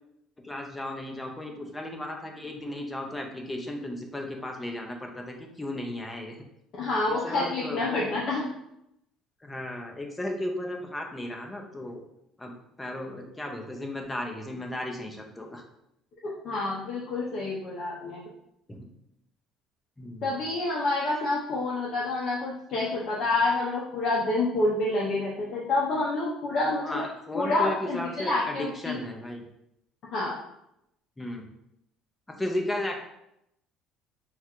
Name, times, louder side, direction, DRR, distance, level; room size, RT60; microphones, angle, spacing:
voice 1, 0.4-6.4 7.1-8.2 9.4-12.0 12.4-15.6 18.7-18.9 20.0-20.3 26.8-29.4 31.2-31.5 32.3-33.0, left 1 dB, 10° left, 2 dB, 0.6 m, -35 dB
voice 2, 6.8-8.4 16.4-18.2 20.2-27.0 27.3-29.0 30.1-30.4, left 2 dB, 50° left, -4 dB, 0.6 m, -28 dB
3.5 x 2.4 x 4.4 m, 0.79 s
cardioid pair, 155°, 0 cm